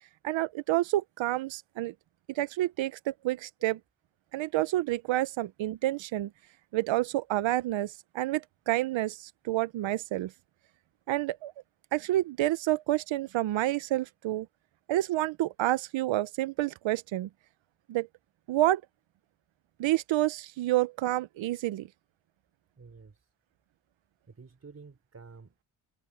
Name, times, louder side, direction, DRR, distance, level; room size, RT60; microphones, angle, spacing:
voice 1, 0.2-1.9 2.3-3.8 4.3-6.3 6.7-10.3 11.1-11.5 11.9-14.5 14.9-17.3 17.9-18.1 18.5-18.8 19.8-21.9, right 15 dB, 85° right, 0.9 m, -29 dB
voice 2, 22.8-23.3 24.3-25.6, right 4 dB, 35° right, 3.8 m, -51 dB
open air
cardioid pair, 75°, 44 cm